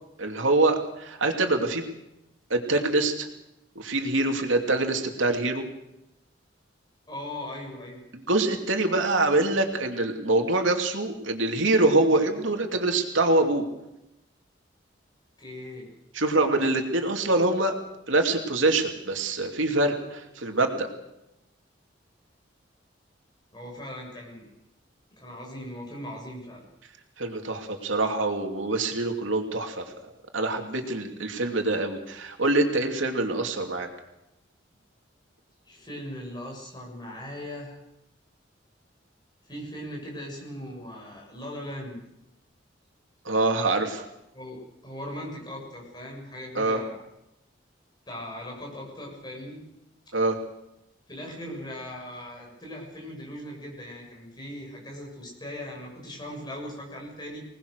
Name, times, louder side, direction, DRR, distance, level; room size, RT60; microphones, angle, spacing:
voice 1, 0.2-1.9 2.5-3.3 3.7-5.6 8.1-13.6 16.1-17.7 18.1-20.9 27.2-29.8 30.3-33.9 43.2-44.0 46.5-46.8 50.1-50.4, right 2 dB, 85° right, 4 dB, 2.7 m, -25 dB
voice 2, 7.1-8.0 15.4-15.9 23.5-24.5 25.1-26.6 35.7-37.8 39.5-42.0 44.3-47.0 48.1-49.6 51.1-57.4, left 1 dB, 20° left, -1 dB, 7.1 m, -39 dB
25.5 x 19.5 x 6.6 m, 0.88 s
head